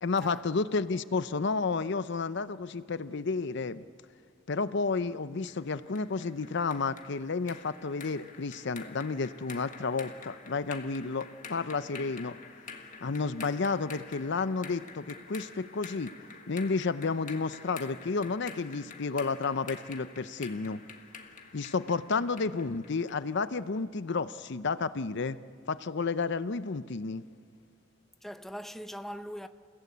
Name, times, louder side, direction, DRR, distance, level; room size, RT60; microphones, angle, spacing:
voice 1, 0.0-3.8 4.5-12.4 13.0-16.1 16.5-20.8 21.5-25.4 25.7-27.2, left 4 dB, 65° left, 0.7 m, -31 dB
sound 1, 5.5-23.3, left 5 dB, 40° left, 1.6 m, -48 dB
voice 2, 28.2-29.5, equal, ahead, 0.7 m, -41 dB
29.5 x 16.5 x 8.5 m
head